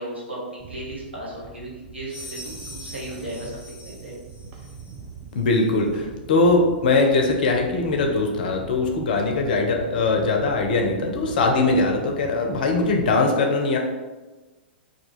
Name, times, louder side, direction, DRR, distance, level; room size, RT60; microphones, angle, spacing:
voice 1, 0.0-4.2 9.9-10.0, right 1 dB, 85° right, -6 dB, 0.9 m, -36 dB
sound 1, 0.6-13.2, right 5 dB, 25° right, 0.4 m, -42 dB
sound 2, 2.1-5.0, left 1 dB, 10° right, 1.0 m, -42 dB
voice 2, 5.3-13.8, left 3 dB, 55° left, 2 dB, 0.5 m, -21 dB
2.3 x 2.2 x 3.0 m, 1.2 s
figure-of-eight pair, 105°, 6 cm